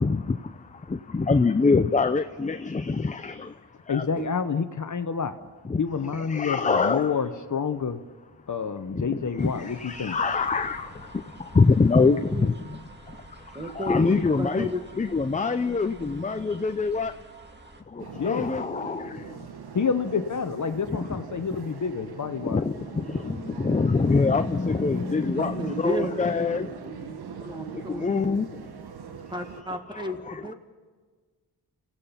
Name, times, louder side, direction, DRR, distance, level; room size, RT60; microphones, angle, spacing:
voice 1, 0.0-3.6 3.9-4.0 5.6-5.8 6.1-7.2 8.9-12.8 13.1-17.1 17.9-19.4 21.0-21.1 22.4-26.7 27.9-28.5 29.9-30.5, left 4 dB, 20° left, 9 dB, 0.6 m, -25 dB
voice 2, 3.9-5.4 5.8-8.0 8.5-10.2 18.1-18.5 19.7-22.6, left 6 dB, 50° left, 9 dB, 1.0 m, -28 dB
sound 1, 9.4-17.8, right 3 dB, 25° right, 2.0 m, -49 dB
voice 3, 12.1-12.5 13.5-14.8 25.4-27.2 27.4-28.4 29.3-30.5, equal, 10° right, 5 dB, 2.0 m, -33 dB
sound 2, 18.0-29.6, right 6 dB, 75° right, 1.3 m, -41 dB
29.0 x 16.5 x 5.8 m, 1.5 s
cardioid pair, 85°, 39 cm